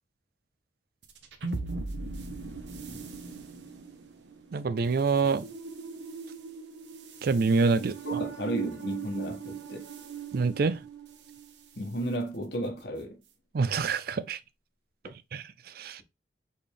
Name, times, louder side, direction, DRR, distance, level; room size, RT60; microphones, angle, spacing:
sound 1, 1.0-11.5, right 5 dB, 85° right, 0.8 m, -39 dB
voice 1, 4.5-5.5 7.2-8.2 10.3-10.8 13.5-14.4 15.3-16.0, right 4 dB, 60° right, 0.4 m, -26 dB
voice 2, 8.0-9.9 11.8-13.2, equal, 65° left, 1.2 m, -34 dB
4.3 x 3.3 x 3.5 m
head